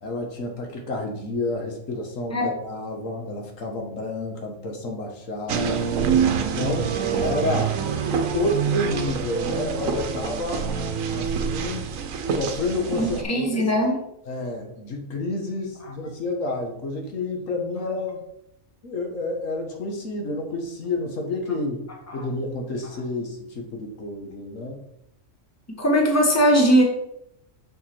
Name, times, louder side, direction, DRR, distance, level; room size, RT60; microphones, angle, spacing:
voice 1, 0.0-5.8 6.4-10.7 11.1-11.9 12.3-13.8 14.2-18.2 18.8-21.9 22.1-24.8, left 2 dB, 75° left, 2 dB, 1.5 m, -30 dB
sound 1, 5.5-13.2, right 7 dB, 80° right, 1.1 m, -26 dB
voice 2, 13.0-14.0 22.1-22.2 25.8-26.8, equal, 10° left, 0 dB, 1.2 m, -19 dB
6.4 x 4.8 x 4.3 m, 0.77 s
omnidirectional pair, 1.4 m